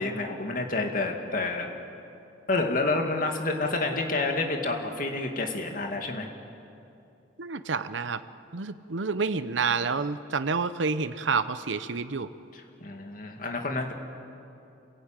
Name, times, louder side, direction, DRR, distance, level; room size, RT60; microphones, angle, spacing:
voice 1, 0.0-1.7 2.5-6.3 12.5-13.9, left 3 dB, 45° left, 2 dB, 2.2 m, -29 dB
voice 2, 7.4-8.2 8.5-12.3, right 4 dB, 90° right, 12 dB, 0.8 m, -29 dB
27.5 x 16.5 x 9.1 m, 2.8 s
head